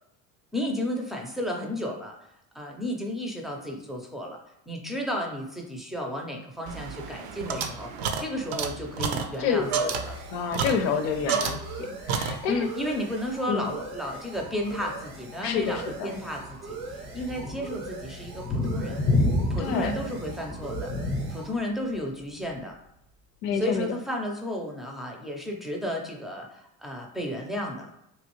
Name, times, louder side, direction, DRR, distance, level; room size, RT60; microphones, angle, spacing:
voice 1, 0.5-2.1 2.5-4.4 4.7-10.2 12.5-19.0 19.5-20.9 21.3-22.8 23.5-27.9, left 1 dB, ahead, 0 dB, 0.5 m, -33 dB
sound 1, 6.7-11.8 12.1-12.8, right 5 dB, 65° right, 0.6 m, -31 dB
sound 2, 8.4-23.1, right 4 dB, 85° right, 0.9 m, -42 dB
voice 2, 9.4-9.9 10.3-12.7 13.5-13.7 15.4-16.1 19.6-19.9 23.4-23.9, left 6 dB, 85° left, 7 dB, 0.7 m, -29 dB
sound 3, 12.9-21.3, left 2 dB, 35° left, 0.7 m, -31 dB
3.1 x 2.4 x 3.0 m, 0.80 s
supercardioid pair, 95°, 47 cm